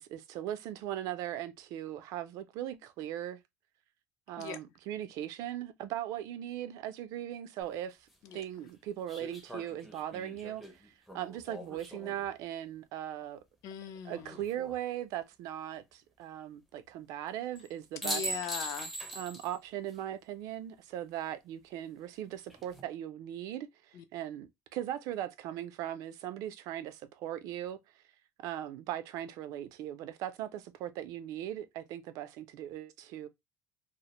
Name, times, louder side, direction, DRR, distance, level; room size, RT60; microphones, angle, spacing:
voice 1, 0.0-3.4 4.3-8.0 8.3-13.4 14.0-18.3 19.1-27.8 28.4-33.3, right 11 dB, 65° right, 0.4 m, -39 dB
sound 1, 7.6-7.7 9.1-12.3 14.1-14.8 17.6-17.7 18.0-19.6 19.9-20.0 22.3-22.8, right 1 dB, ahead, 0.4 m, -41 dB
voice 2, 13.6-14.4 18.0-18.9 23.9-24.0, left 8 dB, 60° left, 0.4 m, -40 dB
2.4 x 2.0 x 2.9 m
cardioid pair, 155°, 6 cm